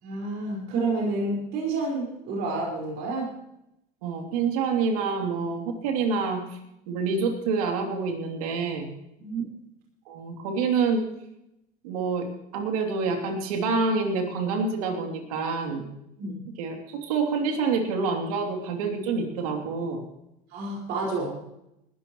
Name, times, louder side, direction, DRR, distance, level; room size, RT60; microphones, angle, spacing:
voice 1, 0.0-3.3 9.2-9.4 16.2-16.4 20.5-21.5, right 3 dB, 65° right, -2 dB, 5.1 m, -29 dB
voice 2, 4.0-6.6 6.9-8.9 10.1-11.0 11.8-12.3 12.5-15.9 16.6-20.0, right 4 dB, 90° right, 3 dB, 3.0 m, -27 dB
20.5 x 13.5 x 3.1 m, 0.83 s
supercardioid pair, 105°, 18 cm